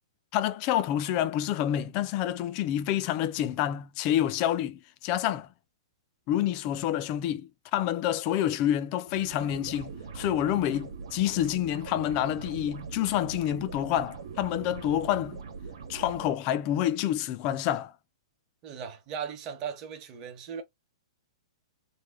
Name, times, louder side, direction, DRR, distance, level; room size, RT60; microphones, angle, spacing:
voice 1, 0.3-5.5 6.3-15.4 15.9-17.9, left 11 dB, 25° left, 0.3 m, -28 dB
sound 1, 9.1-16.3, right 5 dB, 75° right, 1.2 m, -42 dB
voice 2, 18.6-20.6, right 7 dB, 25° right, 0.9 m, -37 dB
3.3 x 2.2 x 3.5 m
hypercardioid pair, 165°, 3 cm